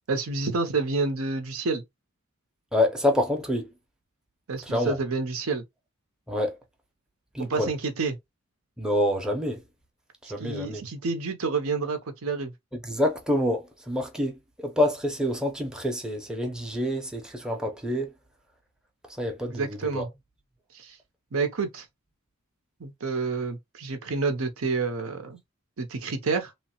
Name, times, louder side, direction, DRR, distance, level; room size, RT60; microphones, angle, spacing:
voice 1, 0.1-1.8 4.5-5.6 7.4-8.2 10.4-12.5 19.5-20.1 20.7-21.0 21.3-21.8 22.8-25.4 25.8-26.5, right 4 dB, 70° right, 0.7 m, -29 dB
voice 2, 2.7-3.7 4.7-5.0 6.3-6.5 7.3-7.7 8.8-9.6 10.3-10.8 12.8-14.3 14.6-18.1 19.2-20.0, left 1 dB, 5° right, 0.6 m, -27 dB
3.1 x 2.0 x 2.9 m
head